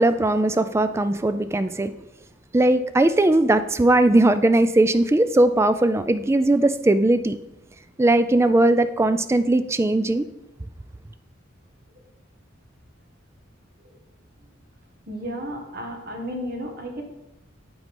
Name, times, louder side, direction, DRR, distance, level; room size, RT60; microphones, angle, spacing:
voice 1, 0.0-1.9 2.5-7.4 8.0-10.2, right 2 dB, 15° right, 0.3 m, -19 dB
voice 2, 15.1-17.0, equal, 50° right, 1.5 m, -33 dB
9.1 x 3.9 x 5.3 m
head